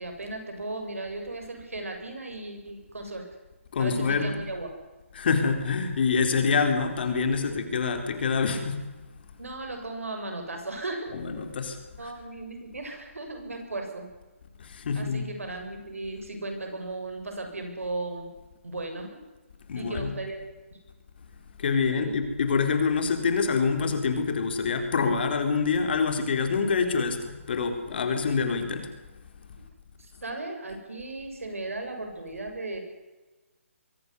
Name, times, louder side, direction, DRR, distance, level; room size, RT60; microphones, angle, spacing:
voice 1, 0.0-3.3 3.8-4.8 9.4-11.1 12.0-14.1 14.9-18.3 18.6-19.1 19.7-20.4 21.8-22.2 29.5-29.6 30.0-32.8, right 2 dB, 85° right, 4 dB, 7.4 m, -36 dB
voice 2, 3.7-4.3 5.1-8.9 11.1-11.8 12.0-12.1 14.6-15.2 19.7-20.1 21.6-28.9, left 5 dB, 45° left, 6 dB, 4.0 m, -26 dB
23.0 x 15.5 x 9.9 m, 1.2 s
hypercardioid pair, 155°, 7 cm